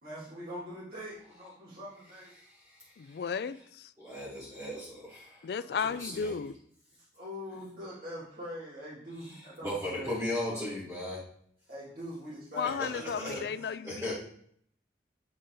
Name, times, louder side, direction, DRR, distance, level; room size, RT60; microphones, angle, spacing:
voice 1, 0.0-2.3 5.7-6.0 7.1-10.1 10.5-10.7 11.7-13.5, equal, 55° right, 2.6 m, -43 dB
voice 2, 2.3-3.2 4.0-5.4 6.0-6.3 9.6-11.2 12.8-12.9 13.1-13.4 13.8-14.1, left 1 dB, 15° right, 1.7 m, -37 dB
voice 3, 3.0-3.9 5.4-6.5 12.6-14.1, left 6 dB, 60° left, 0.3 m, -34 dB
8.5 x 4.0 x 3.8 m
head